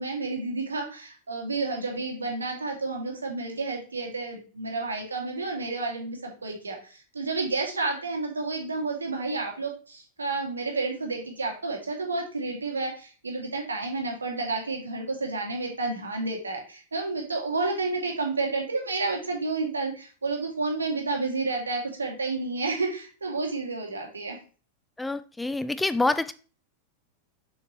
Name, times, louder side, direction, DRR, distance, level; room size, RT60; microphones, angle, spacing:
voice 1, 0.0-24.4, right 3 dB, 75° right, 2 dB, 2.3 m, -30 dB
voice 2, 25.0-26.3, left 2 dB, 5° left, 14 dB, 0.4 m, -26 dB
7.3 x 7.0 x 3.1 m, 0.37 s
figure-of-eight pair, 90°, 0 cm